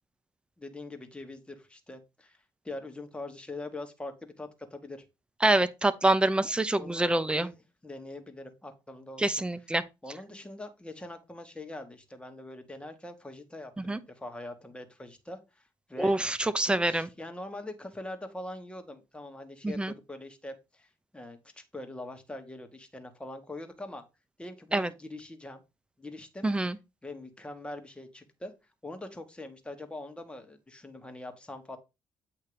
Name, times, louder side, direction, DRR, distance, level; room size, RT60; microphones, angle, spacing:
voice 1, 0.6-2.4 2.6-5.0 6.8-9.2 10.0-16.2 16.7-24.0 24.4-25.6 26.0-26.5 27.0-28.5 28.8-31.8, left 2 dB, 10° left, 1.5 m, -43 dB
voice 2, 5.4-7.5 9.2-9.8 13.8-14.0 16.0-17.1 19.6-19.9 24.7-24.9 26.4-26.8, right 2 dB, 10° right, 0.7 m, -26 dB
8.3 x 2.9 x 4.9 m
cardioid pair, 80°, 9 cm